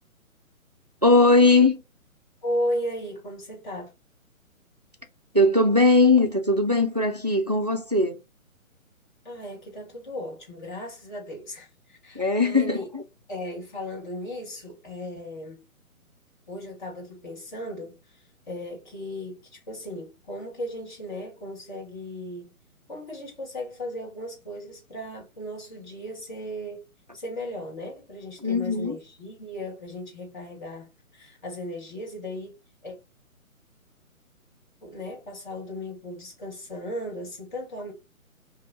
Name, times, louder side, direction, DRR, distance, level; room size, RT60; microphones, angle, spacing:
voice 1, 1.0-1.8 5.3-8.2 12.1-13.0 28.4-29.0, left 2 dB, 30° right, 0.4 m, -20 dB
voice 2, 2.4-3.9 9.2-12.9 13.3-15.6 16.5-22.5 22.9-26.8 27.1-33.0 34.8-37.9, equal, 35° left, 2.1 m, -36 dB
5.5 x 2.7 x 2.8 m
figure-of-eight pair, 140°, 43 cm